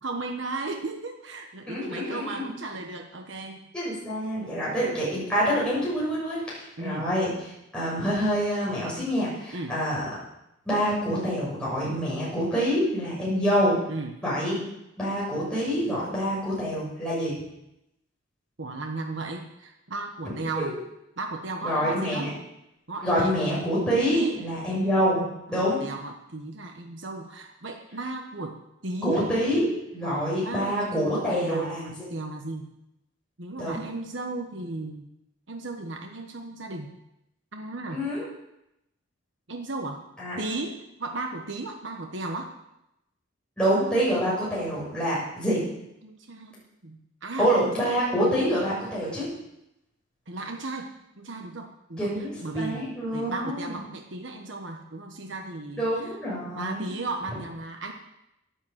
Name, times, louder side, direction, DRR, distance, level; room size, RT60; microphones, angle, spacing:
voice 1, 0.0-3.6 6.8-7.1 9.5-9.7 13.9-14.1 18.6-20.8 21.2-22.3 22.9-23.6 24.1-24.4 25.5-28.6 28.8-29.3 30.0-32.7 33.4-35.1 35.5-37.0 37.5-38.0 39.5-40.0 40.4-42.5 46.0-47.5 50.3-52.1 52.4-56.2 56.5-57.9, right 2 dB, 65° right, 3 dB, 1.3 m, -35 dB
voice 2, 1.7-2.5 3.7-7.3 7.7-10.1 10.6-13.8 14.2-14.6 15.0-17.4 20.6-20.7 21.6-22.3 23.0-25.8 29.0-32.1 33.6-33.8 37.9-38.2 40.2-40.4 43.6-45.6 47.4-49.3 52.0-53.8 55.8-56.9, equal, 5° left, -8 dB, 6.4 m, -26 dB
11.5 x 10.5 x 7.6 m, 0.85 s
head